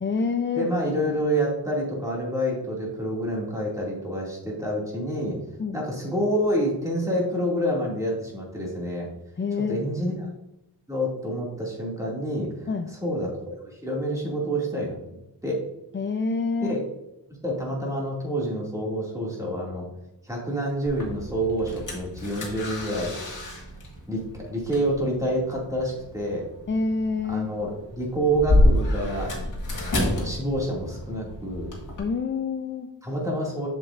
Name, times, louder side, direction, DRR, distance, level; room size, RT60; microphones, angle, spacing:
voice 1, 0.0-0.7 5.6-5.8 9.4-9.8 12.7-12.9 15.9-16.8 26.7-27.5 32.0-32.9, left 4 dB, 30° left, 6 dB, 0.4 m, -27 dB
voice 2, 0.5-5.4 5.7-9.1 9.7-10.3 10.9-12.7 13.0-15.6 16.6-16.8 17.4-19.9 20.2-23.1 24.1-26.5 27.2-29.4 30.1-31.7 33.0-33.7, right 1 dB, 5° right, -4 dB, 2.3 m, -28 dB
sound 1, 20.8-32.0, left 1 dB, 45° left, 1.9 m, -29 dB
7.4 x 7.1 x 2.5 m, 0.89 s
wide cardioid pair, 135°, 42 cm